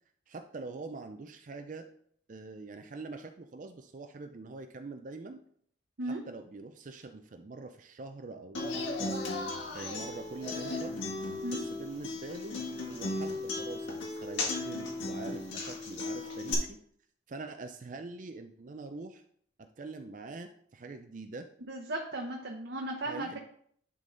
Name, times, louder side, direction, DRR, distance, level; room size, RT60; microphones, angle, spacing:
voice 1, 0.3-1.8 2.3-5.4 6.1-9.2 9.7-11.1 11.5-16.8 17.3-19.2 19.6-21.5 23.1-23.4, right 3 dB, 45° right, 7 dB, 0.4 m, -44 dB
Human voice / Acoustic guitar, 8.5-16.5, left 2 dB, 90° left, 1.8 m, -36 dB
voice 2, 21.7-23.4, right 1 dB, 65° right, 1 dB, 0.9 m, -36 dB
10.5 x 3.8 x 3.8 m, 0.63 s
head